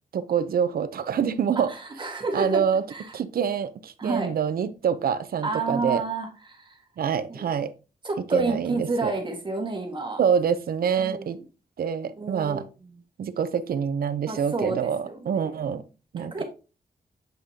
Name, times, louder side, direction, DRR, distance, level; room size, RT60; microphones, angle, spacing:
voice 1, 0.1-1.7 2.3-2.8 3.1-6.0 7.0-7.7 8.3-9.1 10.2-11.4 11.8-12.7 13.2-15.8 16.1-16.4, right 7 dB, 75° right, 0.7 m, -26 dB
voice 2, 1.5-2.6 2.9-3.1 4.0-4.3 5.4-6.8 7.3-7.4 8.0-10.2 11.0-11.3 12.2-12.9 14.3-15.5 16.2-16.4, right 3 dB, 30° right, 1.7 m, -30 dB
7.9 x 5.1 x 2.8 m
wide cardioid pair, 145°, 15 cm